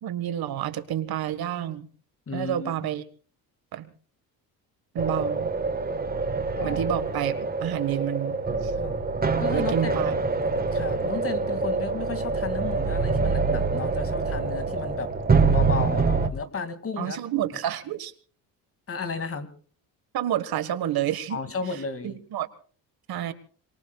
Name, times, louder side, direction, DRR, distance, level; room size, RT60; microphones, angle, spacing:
voice 1, 0.0-1.9 2.3-3.0 3.7-3.9 4.9-5.5 6.6-8.7 9.5-10.1 17.0-18.1 20.1-21.4 21.7-22.5 23.1-23.3, right 11 dB, 60° right, 12 dB, 1.7 m, -29 dB
voice 2, 2.3-2.7 6.6-6.8 8.7-9.0 9.4-9.9 10.7-15.1 15.5-17.2 18.9-19.5 21.3-22.2, left 4 dB, 35° left, 9 dB, 2.5 m, -33 dB
sound 1, 5.0-16.3, right 4 dB, 20° right, 1.5 m, -25 dB
sound 2, 8.3-16.3, left 4 dB, 85° left, 3.3 m, -45 dB
26.0 x 23.0 x 2.4 m, 0.42 s
cardioid pair, 110°, 40 cm